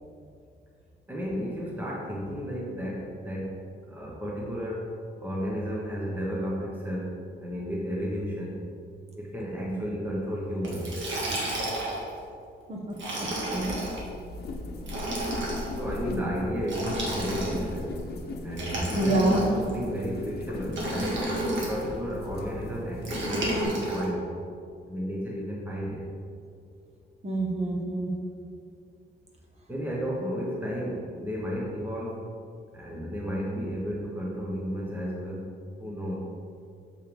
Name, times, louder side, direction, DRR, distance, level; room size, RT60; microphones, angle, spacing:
voice 1, 1.1-8.6 9.2-10.9 15.8-18.0 18.4-21.2 21.7-24.3 24.9-26.0 29.7-32.2 32.7-35.4 35.8-36.3, equal, 10° right, -4 dB, 0.9 m, -33 dB
Liquid, 10.6-12.1 12.9-14.0 14.8-15.7 16.6-17.8 18.5-19.7 20.7-21.8 23.0-24.1, right 1 dB, 75° right, 1.8 m, -31 dB
voice 2, 12.7-13.8 16.1-16.2 18.9-19.5 27.2-28.1, right 1 dB, 35° right, -2 dB, 1.3 m, -27 dB
sound 1, 13.5-23.6, left 3 dB, 55° left, 0.9 m, -39 dB
7.0 x 5.5 x 5.1 m, 2.5 s
wide cardioid pair, 160°, 20 cm